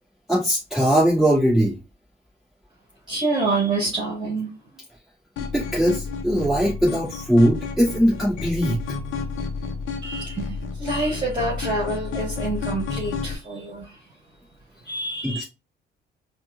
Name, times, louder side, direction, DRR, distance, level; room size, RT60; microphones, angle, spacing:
voice 1, 0.3-1.7 5.5-8.8 15.2-15.4, equal, ahead, -9 dB, 1.8 m, -20 dB
voice 2, 3.1-4.5 10.0-14.0 14.9-15.4, right 2 dB, 25° right, -4 dB, 1.8 m, -27 dB
sound 1, 5.4-13.3, left 4 dB, 80° left, 0.6 m, -31 dB
4.7 x 2.3 x 2.4 m, 0.27 s
cardioid pair, 90°, 20 cm